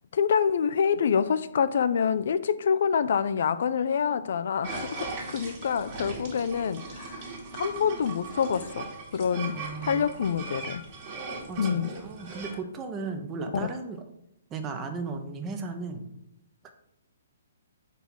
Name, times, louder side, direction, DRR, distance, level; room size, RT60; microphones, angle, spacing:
voice 1, 0.1-7.3 7.5-10.8 11.6-11.9, left 7 dB, 60° left, 13 dB, 0.3 m, -26 dB
sound 1, 4.6-12.6, right 3 dB, 40° right, 1.8 m, -39 dB
voice 2, 9.5-10.2 11.5-14.0 14.5-16.0 16.6-16.7, right 4 dB, 20° right, 5 dB, 0.8 m, -36 dB
4.5 x 4.1 x 5.4 m, 0.79 s
hypercardioid pair, 130°, 0 cm